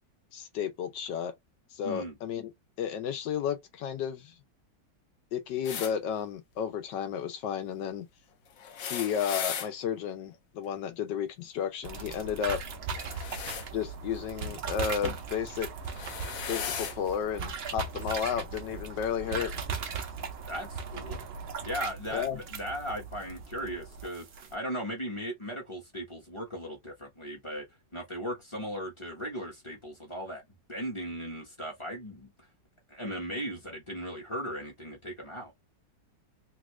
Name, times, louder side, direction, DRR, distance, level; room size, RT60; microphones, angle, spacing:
voice 1, 0.3-1.3 1.7-2.5 2.8-4.3 5.3-8.1 8.8-12.6 13.7-15.7 16.3-19.5 22.1-22.4, left 8 dB, 80° left, 1.4 m, -32 dB
voice 2, 1.8-2.1 20.5-21.2 21.6-27.7 27.9-30.4 30.7-32.5 32.9-35.5, equal, 25° left, 0.8 m, -37 dB
sound 1, 5.6-5.9 8.6-9.7 12.9-13.7 15.0-15.2 15.8-17.0 18.0-18.1 19.3-19.4, left 7 dB, 65° left, 0.9 m, -36 dB
sound 2, 11.8-24.5, right 5 dB, 70° right, 0.5 m, -38 dB
3.3 x 2.4 x 3.0 m
omnidirectional pair, 1.9 m